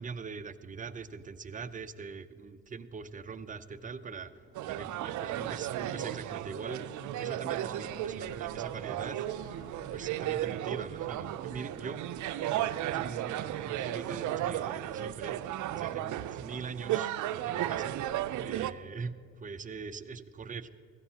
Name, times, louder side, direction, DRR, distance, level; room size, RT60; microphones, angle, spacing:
voice 1, 0.0-4.3 4.6-9.7 9.9-12.0 12.5-15.4 15.7-20.7, right 5 dB, 25° right, 10 dB, 0.6 m, -42 dB
Subway metro underground, 3.0-15.4, left 1 dB, 45° left, 1.7 m, -56 dB
sound 1, 4.6-18.7, right 12 dB, 75° right, 0.5 m, -34 dB
16.0 x 14.5 x 2.8 m, 2.3 s
cardioid pair, 90°, 30 cm